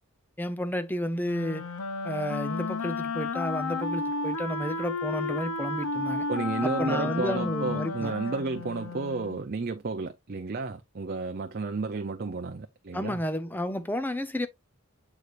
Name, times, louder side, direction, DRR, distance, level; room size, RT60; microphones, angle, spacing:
voice 1, 0.4-1.7 2.0-6.3 6.6-8.1 12.9-14.5, equal, 10° left, 0.6 m, -31 dB
Wind instrument woodwind instrument, 1.2-9.4, left 3 dB, 85° left, 0.7 m, -32 dB
voice 2, 6.3-13.2, right 3 dB, 40° right, 0.5 m, -32 dB
8.0 x 4.7 x 2.5 m
head